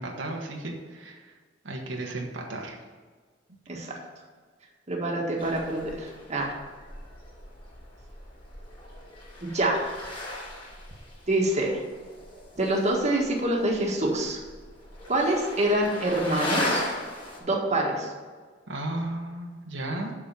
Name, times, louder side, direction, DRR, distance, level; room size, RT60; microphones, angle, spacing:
voice 1, 0.0-1.3 1.6-2.8 18.7-20.1, right 1 dB, 80° right, 0 dB, 1.5 m, -34 dB
voice 2, 4.9-6.5 9.4-9.9 11.3-11.7 12.6-14.4 15.1-16.9 17.5-18.1, right 1 dB, 40° right, -1 dB, 1.6 m, -26 dB
sound 1, 5.4-17.4, left 1 dB, 30° left, 3.2 m, -37 dB
7.3 x 6.6 x 6.9 m, 1.5 s
head